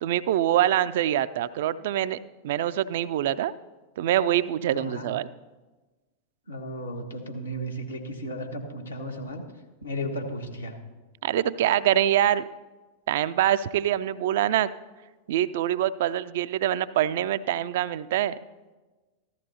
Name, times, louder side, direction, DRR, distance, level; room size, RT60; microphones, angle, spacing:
voice 1, 0.0-2.2 2.4-3.5 4.0-5.3 11.2-12.4 13.1-14.7 15.3-18.4, right 12 dB, 55° right, 15 dB, 0.3 m, -24 dB
voice 2, 4.7-5.1 6.5-9.4 9.8-10.8, equal, 80° left, 1 dB, 1.5 m, -34 dB
15.0 x 13.0 x 2.8 m, 1.2 s
figure-of-eight pair, 90°, 0 cm